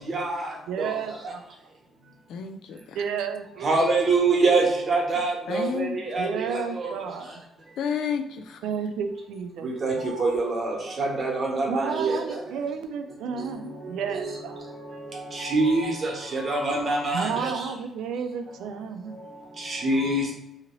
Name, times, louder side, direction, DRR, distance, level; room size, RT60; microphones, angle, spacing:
voice 1, 0.1-0.9 3.6-6.9 9.6-12.2 13.4-13.5 13.8-14.3 15.1-17.7 19.6-20.3, right 3 dB, 45° right, -1 dB, 1.0 m, -25 dB
voice 2, 0.7-1.5 2.9-4.0 6.2-7.3 8.6-9.7 11.7-14.6 17.1-19.2, right 6 dB, 90° right, 7 dB, 0.4 m, -32 dB
voice 3, 2.3-3.0 5.5-6.3 7.8-8.7, left 7 dB, 80° left, 6 dB, 0.3 m, -31 dB
2.8 x 2.5 x 3.1 m, 0.88 s
cardioid pair, 90°, 0 cm